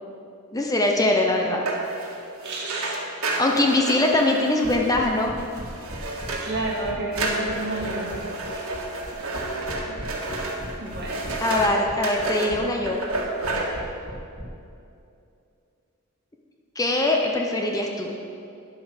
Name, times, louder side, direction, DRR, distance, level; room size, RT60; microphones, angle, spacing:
voice 1, 0.5-1.6 3.4-5.3 11.4-13.0 16.8-18.2, left 2 dB, 15° left, 1 dB, 0.8 m, -22 dB
sound 1, 1.7-6.8 7.1-11.7 12.0-12.5 12.9-13.6, right 2 dB, 80° right, 1.7 m, -30 dB
voice 2, 2.4-3.1 6.4-8.7 9.3-10.2 10.8-11.4, right 2 dB, 55° right, -4 dB, 2.4 m, -32 dB
sound 2, 4.6-14.5, equal, 35° right, 2.1 m, -39 dB
9.6 x 8.4 x 6.4 m, 2.5 s
head